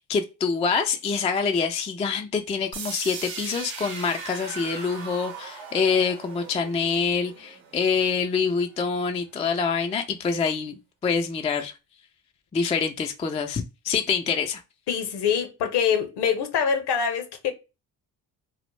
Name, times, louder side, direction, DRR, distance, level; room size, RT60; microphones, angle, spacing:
voice 1, 0.0-11.7 12.5-14.6, left 5 dB, 15° left, 0.3 m, -26 dB
sound 1, 2.7-8.7, right 5 dB, 70° right, 0.8 m, -39 dB
voice 2, 14.9-17.5, left 7 dB, 55° left, 0.7 m, -24 dB
2.1 x 2.0 x 3.1 m
hypercardioid pair, 50°, 48 cm